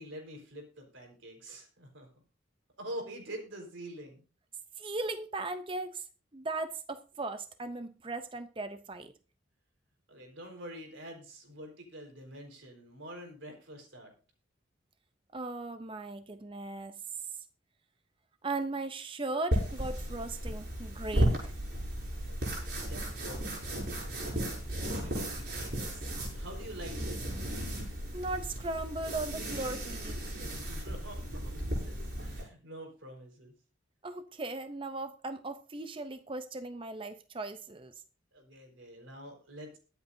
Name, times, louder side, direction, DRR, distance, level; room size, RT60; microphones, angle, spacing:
voice 1, 0.0-2.1 2.8-4.2 10.1-14.1 22.3-24.2 24.8-27.2 30.4-33.5 38.3-39.8, right 1 dB, 90° right, 4.4 m, -46 dB
voice 2, 4.8-6.1 6.3-9.1 15.3-17.0 18.4-21.5 28.1-30.2 34.0-37.9, right 2 dB, 25° right, 0.5 m, -38 dB
sound 1, 19.5-32.4, right 1 dB, 55° right, 5.9 m, -35 dB
22.0 x 8.1 x 2.7 m
head